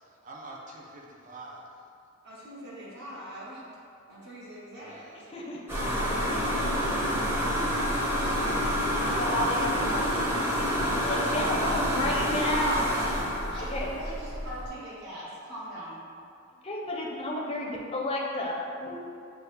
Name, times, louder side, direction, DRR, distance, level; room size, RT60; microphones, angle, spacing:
voice 1, 0.2-1.6 4.9-5.0 8.2-8.6 8.9-10.4, right 2 dB, 40° right, -3 dB, 0.7 m, -45 dB
voice 2, 2.2-3.7 4.1-5.3 5.8-7.2 11.0-11.5 13.5-16.0, right 1 dB, 55° right, -8 dB, 1.3 m, -42 dB
voice 3, 5.3-5.7 7.5-7.8 8.9-9.9 11.0-13.0 13.6-13.9 16.6-19.0, left 1 dB, 30° left, -2 dB, 0.5 m, -31 dB
sound 1, 5.7-14.7, equal, 10° right, 0.9 m, -28 dB
6.2 x 2.3 x 3.4 m, 2.4 s
head